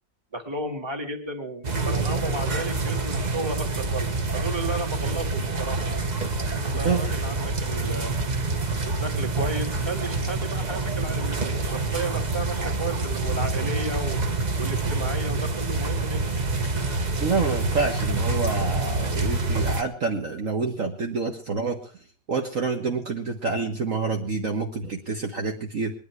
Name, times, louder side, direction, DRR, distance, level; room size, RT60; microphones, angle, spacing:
voice 1, 0.3-4.1 4.4-5.8 6.6-8.1 9.0-14.2 14.6-16.2, right 2 dB, 15° right, 3 dB, 2.1 m, -33 dB
sound 1, 1.6-19.8, right 3 dB, 30° right, 0.9 m, -27 dB
voice 2, 17.2-21.9 22.3-25.9, right 4 dB, 50° right, 2 dB, 1.7 m, -27 dB
21.0 x 11.0 x 4.7 m, 0.38 s
omnidirectional pair, 1.9 m